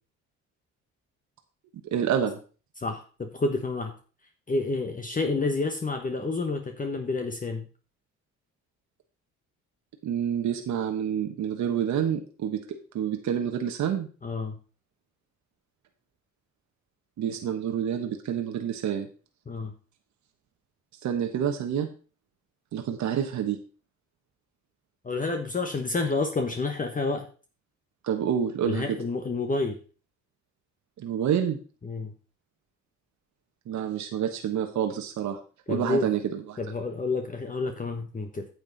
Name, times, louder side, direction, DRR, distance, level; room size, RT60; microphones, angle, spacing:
voice 1, 1.8-2.4 10.0-12.6 12.9-14.1 17.2-19.1 21.0-21.9 22.7-23.6 28.0-29.0 31.0-31.6 33.7-35.4 35.7-36.6, right 8 dB, 70° right, 5 dB, 1.3 m, -28 dB
voice 2, 2.8-3.9 4.5-7.7 14.2-14.6 19.5-19.7 25.0-27.3 28.6-29.8 31.8-32.1 35.7-36.1 36.6-38.5, left 3 dB, 25° left, 5 dB, 1.2 m, -29 dB
9.4 x 7.2 x 4.1 m, 0.37 s
cardioid pair, 90°, 30 cm